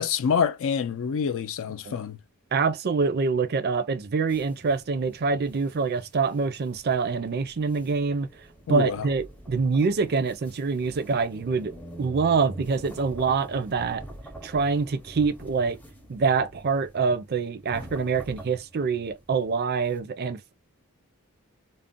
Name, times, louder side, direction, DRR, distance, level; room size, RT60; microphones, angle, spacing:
voice 1, 0.0-2.2 8.7-9.1, left 6 dB, 60° left, 0.4 m, -26 dB
voice 2, 2.5-8.3 8.7-14.0 14.4-15.8 16.1-20.5, right 4 dB, 45° right, 0.4 m, -25 dB
sound 1, 4.3-20.0, right 1 dB, 5° left, 0.6 m, -46 dB
2.5 x 2.0 x 3.6 m
head